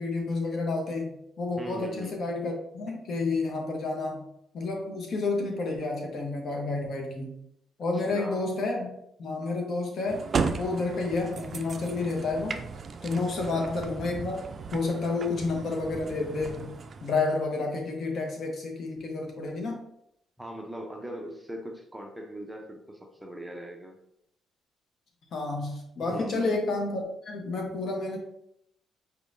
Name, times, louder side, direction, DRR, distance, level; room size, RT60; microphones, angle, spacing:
voice 1, 0.0-4.3 4.5-7.4 7.8-8.9 9.2-10.3 10.6-12.6 13.0-14.4 14.7-19.8 25.3-28.2, left 3 dB, 60° left, 2 dB, 1.0 m, -30 dB
voice 2, 1.6-2.2 8.1-8.5 13.5-13.7 15.1-15.2 20.4-24.0 26.0-26.6, right 1 dB, 10° right, 2 dB, 0.6 m, -40 dB
sound 1, 10.1-17.3, right 5 dB, 45° right, 0.3 m, -35 dB
4.5 x 3.3 x 2.6 m, 0.76 s
cardioid pair, 90°, 0 cm